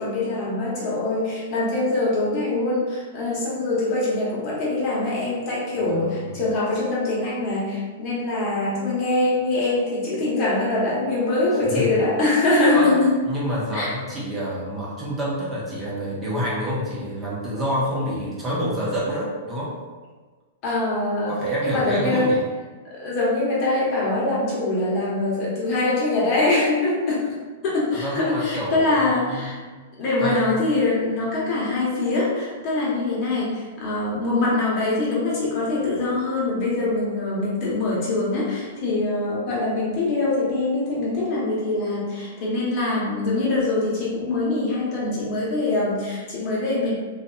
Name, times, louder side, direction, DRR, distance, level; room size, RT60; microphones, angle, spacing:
voice 1, 0.0-13.1 13.7-13.9 20.6-21.4 21.6-22.4 22.8-27.2 27.6-29.6 30.0-46.9, left 2 dB, 40° left, -6 dB, 1.0 m, -23 dB
voice 2, 5.8-6.3 11.6-11.9 12.7-13.0 13.2-19.8 21.3-22.4 27.9-29.6 30.2-30.6, equal, 20° right, -7 dB, 0.9 m, -27 dB
2.6 x 2.5 x 2.2 m, 1.4 s
hypercardioid pair, 105°, 0 cm